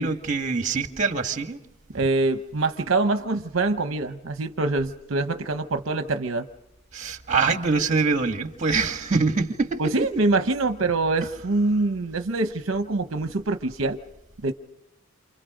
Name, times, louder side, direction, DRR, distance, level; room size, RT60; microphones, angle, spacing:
voice 1, 0.0-1.6 6.9-9.9, right 4 dB, 35° right, 1.9 m, -24 dB
voice 2, 1.9-6.5 9.8-14.0 14.4-14.5, right 2 dB, 65° right, 0.9 m, -24 dB
29.5 x 27.5 x 5.1 m
head